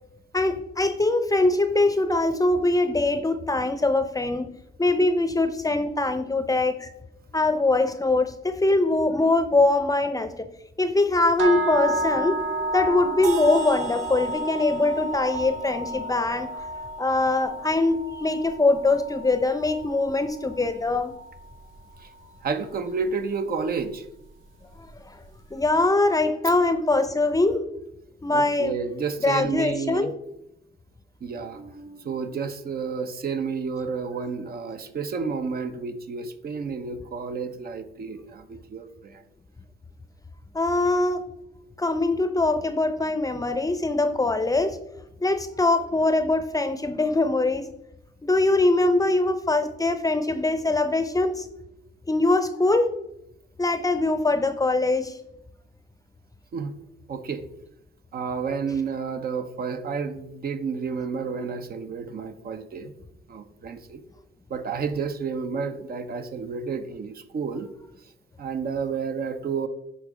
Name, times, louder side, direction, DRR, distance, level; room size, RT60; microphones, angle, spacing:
voice 1, 0.3-4.5 4.8-6.9 7.3-10.5 10.8-12.4 12.7-16.5 17.0-21.1 25.0-25.1 25.5-27.6 28.2-28.8 29.2-30.1 40.5-41.2 41.8-44.8 45.2-47.7 48.2-51.5 52.1-52.9 53.6-55.1, left 2 dB, 15° left, 10 dB, 0.7 m, -22 dB
sound 1, 11.4-21.5, right 1 dB, 85° right, 1.0 m, -32 dB
sound 2, 13.2-17.1, right 6 dB, 35° right, 1.9 m, -38 dB
voice 2, 22.4-24.0 28.3-30.1 31.2-39.2 56.5-56.7 57.1-57.4 58.1-62.9 63.3-64.0 64.5-67.7 68.4-69.7, right 5 dB, 50° right, 8 dB, 0.8 m, -31 dB
10.5 x 3.7 x 4.9 m, 0.85 s
cardioid pair, 90°, 20 cm